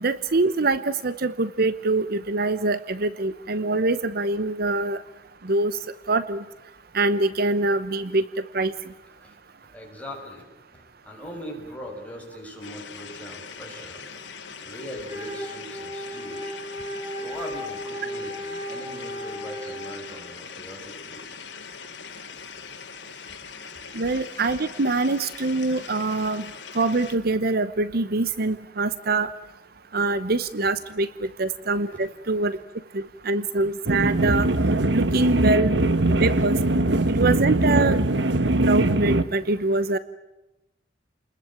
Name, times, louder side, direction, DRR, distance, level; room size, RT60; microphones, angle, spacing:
voice 1, 0.0-5.0 5.4-5.8 6.1-6.4 6.9-8.2 8.5-8.7 23.9-26.5 26.7-29.3 29.9-32.6 32.9-34.5 34.9-35.7 36.2-36.6 37.1-38.0 38.6-40.0, right 3 dB, 55° right, 14 dB, 0.9 m, -24 dB
voice 2, 9.2-14.1 14.6-16.6 17.2-21.4 23.9-24.0 36.1-36.2 37.3-37.4, equal, 10° left, -1 dB, 7.0 m, -41 dB
sound 1, 12.6-27.2, left 6 dB, 85° left, 2.8 m, -41 dB
Wind instrument woodwind instrument, 15.0-20.2, equal, 20° right, 4.2 m, -35 dB
sound 2, 33.9-39.2, right 2 dB, 75° right, 1.2 m, -21 dB
30.0 x 21.0 x 9.1 m, 0.97 s
head